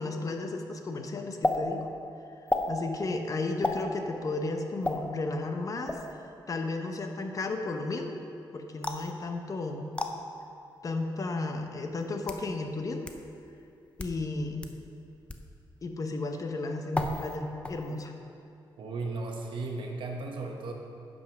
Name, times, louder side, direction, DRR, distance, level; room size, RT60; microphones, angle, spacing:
voice 1, 0.0-1.9 2.7-6.0 6.5-8.2 8.5-9.9 10.8-13.1 14.0-14.7 15.8-18.1, left 3 dB, 40° left, 4 dB, 0.8 m, -33 dB
sound 1, 1.4-1.6 2.5-2.7 3.6-3.8 4.8-5.0 5.9-6.1 8.8-9.1 10.0-10.1 11.1-11.2 12.0-12.5 13.1-13.2 13.9-14.2 14.6-14.7 15.3-15.5 16.9-17.4 17.6-18.1, left 2 dB, 15° left, 0.6 m, -31 dB
voice 2, 18.8-20.7, right 3 dB, 75° right, 2 dB, 1.0 m, -35 dB
9.1 x 5.4 x 5.9 m, 2.6 s
cardioid pair, 105°, 8 cm